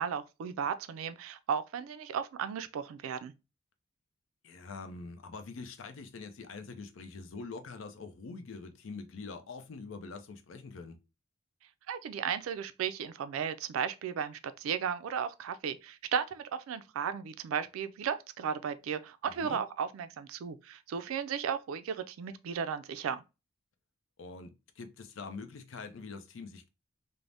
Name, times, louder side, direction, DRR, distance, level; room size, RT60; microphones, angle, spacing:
voice 1, 0.0-3.3 11.9-23.2, right 7 dB, 85° right, 0.3 m, -35 dB
voice 2, 4.4-11.0 19.4-19.6 24.2-26.7, left 4 dB, 70° left, 0.5 m, -44 dB
3.3 x 2.0 x 2.5 m
head